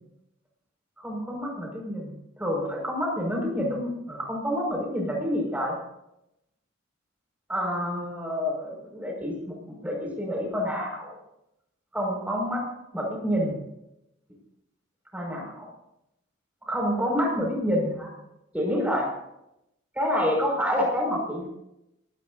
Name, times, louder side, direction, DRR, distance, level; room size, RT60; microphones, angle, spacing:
voice 1, 1.0-5.8 7.5-11.1 11.9-12.6 12.9-13.6 15.1-15.7 16.6-18.1 18.5-19.0 20.0-21.5, equal, 10° right, -1 dB, 5.6 m, -28 dB
26.5 x 18.0 x 2.7 m, 0.84 s
head